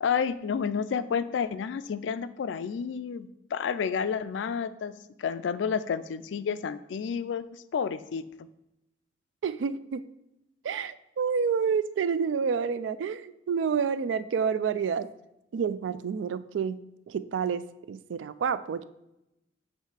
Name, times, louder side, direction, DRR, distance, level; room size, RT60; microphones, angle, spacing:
voice 1, 0.0-4.9 5.2-8.2, left 6 dB, 85° left, 13 dB, 0.3 m, -30 dB
voice 2, 9.4-10.0 10.6-15.1 15.5-16.8 17.1-18.8, right 6 dB, 90° right, 14 dB, 0.3 m, -29 dB
7.4 x 3.2 x 4.8 m, 0.89 s
head